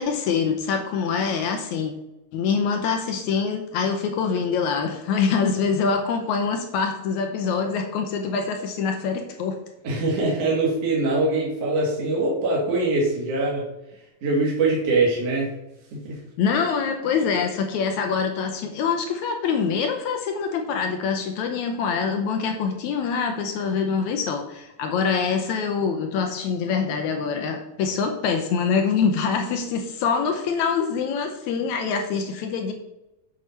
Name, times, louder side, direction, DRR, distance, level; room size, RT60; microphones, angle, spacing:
voice 1, 0.0-1.9 2.3-9.6 16.4-32.7, left 5 dB, 75° left, 5 dB, 1.9 m, -25 dB
voice 2, 9.8-13.6 14.2-15.5 16.0-16.2, right 2 dB, 50° right, -4 dB, 2.7 m, -23 dB
8.1 x 5.0 x 5.6 m, 0.92 s
omnidirectional pair, 3.9 m